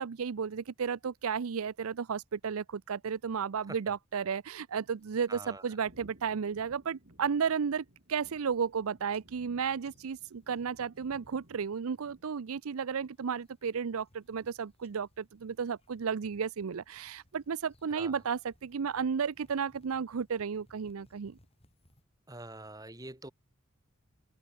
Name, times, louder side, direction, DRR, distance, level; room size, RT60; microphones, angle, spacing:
voice 1, 0.0-21.4, right 6 dB, 85° right, 0.5 m, -33 dB
sound 1, 5.0-5.8 6.2-6.6 7.0-7.3 7.8-7.9 8.1-8.8 9.1-11.7 11.9-12.5 13.0-22.0, left 1 dB, 30° left, 6.3 m, -68 dB
voice 2, 5.3-5.8 17.9-18.2 22.3-23.3, right 2 dB, 15° right, 2.4 m, -45 dB
sound 2, 5.8-12.6, equal, 55° right, 6.4 m, -60 dB
head